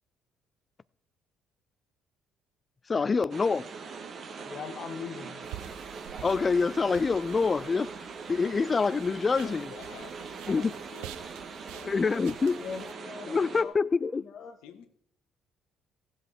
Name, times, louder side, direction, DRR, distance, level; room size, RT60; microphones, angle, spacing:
voice 1, 2.9-3.6 6.2-7.9 8.3-9.7 10.5-10.7 11.9-12.6 13.3-14.2, left 4 dB, 30° left, 0.4 m, -26 dB
sound 1, 3.3-13.6, right 5 dB, 50° right, 1.4 m, -42 dB
voice 2, 4.4-5.5 11.7-11.8 12.6-13.7 14.2-14.9, left 6 dB, 50° left, 0.9 m, -42 dB
sound 2, 5.4-12.9, right 13 dB, 85° right, 0.5 m, -49 dB
voice 3, 9.4-11.1 11.5-12.4 14.6-14.9, left 9 dB, 85° left, 1.3 m, -51 dB
16.0 x 7.7 x 4.8 m
supercardioid pair, 80°, 0 cm